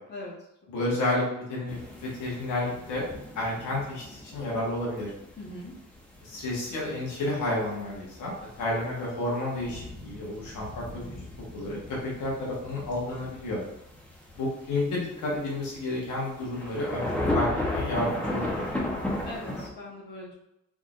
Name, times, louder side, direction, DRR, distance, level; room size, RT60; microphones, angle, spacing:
voice 1, 0.7-3.0 3.3-5.1 6.2-11.1 11.5-13.6 14.4-18.7, left 1 dB, 75° left, -4 dB, 1.4 m, -31 dB
sound 1, 1.7-19.7, left 1 dB, 5° left, 1.0 m, -36 dB
voice 2, 5.3-5.7 19.2-20.3, left 1 dB, 35° left, -4 dB, 1.1 m, -40 dB
3.7 x 3.6 x 2.5 m, 0.84 s
cardioid pair, 90°, 30 cm